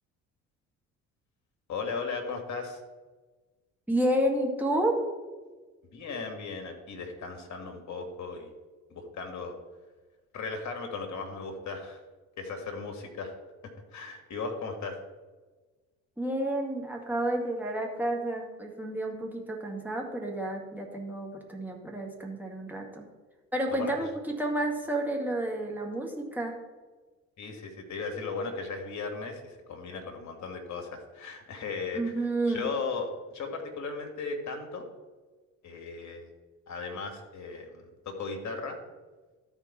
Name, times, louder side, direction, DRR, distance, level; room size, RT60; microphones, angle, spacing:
voice 1, 1.7-2.8 5.9-8.5 8.9-9.6 10.3-12.0 12.4-13.3 13.9-15.0 23.7-23.9 27.4-32.1 32.5-34.8 35.6-36.3 36.7-38.8, left 4 dB, 45° left, 4 dB, 1.9 m, -36 dB
voice 2, 3.9-5.0 16.2-23.1 23.5-24.1 24.4-26.5 31.9-32.7, right 1 dB, 5° right, 0 dB, 2.1 m, -30 dB
13.0 x 4.6 x 4.3 m, 1.3 s
hypercardioid pair, 55°, 40 cm